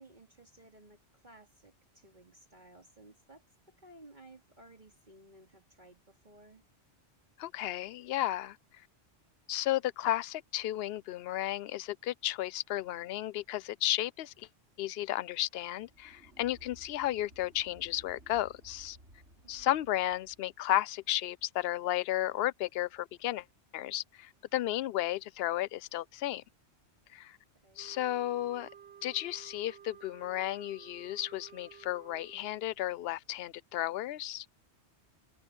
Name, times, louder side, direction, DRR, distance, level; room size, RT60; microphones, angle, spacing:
voice 1, 0.0-6.6 19.4-19.8 27.5-27.9, right 1 dB, 40° right, 2.9 m, -57 dB
voice 2, 7.4-8.6 9.5-14.5 14.8-19.0 19.5-23.4 23.7-26.4 27.1-27.4 27.8-28.7 29.0-34.5, left 14 dB, 65° left, 0.8 m, -33 dB
sound 1, 15.7-20.5, right 1 dB, 90° right, 7.1 m, -58 dB
sound 2, 27.8-32.7, right 8 dB, 65° right, 5.5 m, -54 dB
omnidirectional pair, 1.2 m